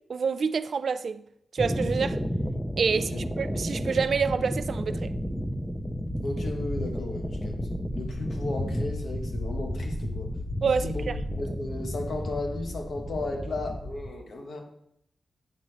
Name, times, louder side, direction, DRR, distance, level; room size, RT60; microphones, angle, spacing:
voice 1, 0.1-1.2 1.5-2.2 2.8-3.1 3.4-5.1 10.6-11.2, right 5 dB, 65° right, 0.4 m, -27 dB
sound 1, 1.6-14.1, equal, ahead, 0.5 m, -32 dB
voice 2, 2.9-3.2 6.2-7.6 7.9-10.3 10.7-11.0 11.3-14.6, left 2 dB, 75° left, 1.4 m, -35 dB
sound 2, 6.4-11.4, left 2 dB, 45° left, 1.4 m, -37 dB
8.7 x 3.0 x 6.3 m
wide cardioid pair, 100°, 0 cm